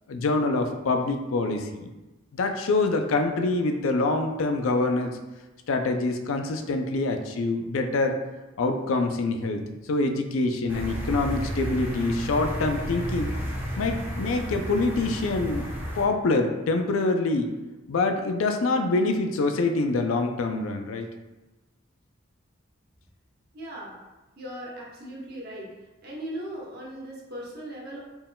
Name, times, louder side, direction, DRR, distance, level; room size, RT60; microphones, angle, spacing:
voice 1, 0.1-1.9 2.3-5.2 5.7-8.2 8.6-9.6 9.9-13.3 13.8-15.7 16.0-17.5 17.9-21.1, left 3 dB, 80° left, 5 dB, 0.4 m, -25 dB
sound 1, 10.7-16.0, equal, 10° right, 0.6 m, -32 dB
voice 2, 23.5-23.9 24.4-25.7 26.0-28.0, right 1 dB, 50° right, -3 dB, 0.9 m, -38 dB
4.3 x 3.7 x 2.2 m, 1.1 s
head